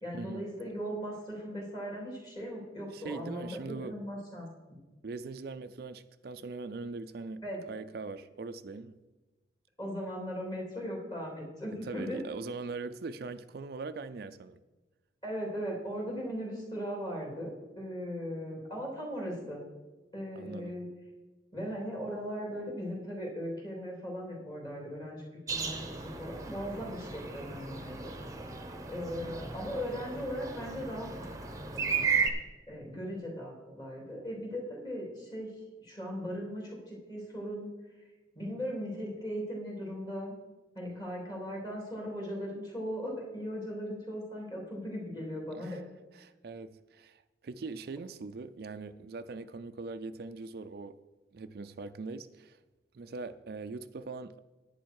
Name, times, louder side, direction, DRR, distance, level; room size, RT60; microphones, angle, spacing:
voice 1, 0.0-4.5 7.4-7.6 9.8-12.2 15.2-19.6 20.1-20.8 21.5-28.1 28.9-31.4 31.7-32.0 32.7-35.5 35.8-37.7 38.3-40.3 40.7-45.8, equal, 25° left, 3.4 m, -38 dB
voice 2, 2.9-3.9 5.0-7.4 7.7-8.9 11.8-14.6 20.4-20.8 45.5-45.8 46.1-51.0 51.3-52.6 52.9-54.4, right 3 dB, 55° right, 0.4 m, -41 dB
sound 1, 25.5-32.3, right 5 dB, 20° right, 0.9 m, -35 dB
11.0 x 9.2 x 4.7 m
head